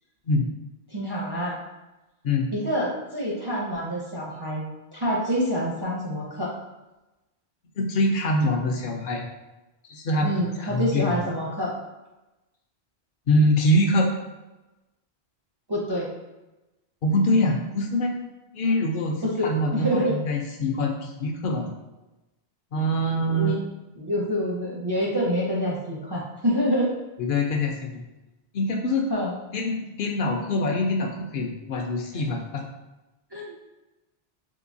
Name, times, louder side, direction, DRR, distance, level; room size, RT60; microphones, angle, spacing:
voice 1, 0.9-1.6 2.5-4.6 4.9-6.5 10.2-11.7 15.7-16.1 19.4-20.2 23.3-23.6 24.0-26.9 29.1-29.4 33.3-33.7, equal, 35° right, -4 dB, 0.4 m, -27 dB
voice 2, 7.8-9.2 9.9-10.3 10.6-11.2 13.3-14.1 17.0-18.1 18.5-21.7 22.7-23.6 27.2-28.0 28.5-29.1 29.5-32.6, left 1 dB, 60° left, 2 dB, 0.6 m, -24 dB
3.7 x 2.7 x 2.6 m, 1.0 s
omnidirectional pair, 1.1 m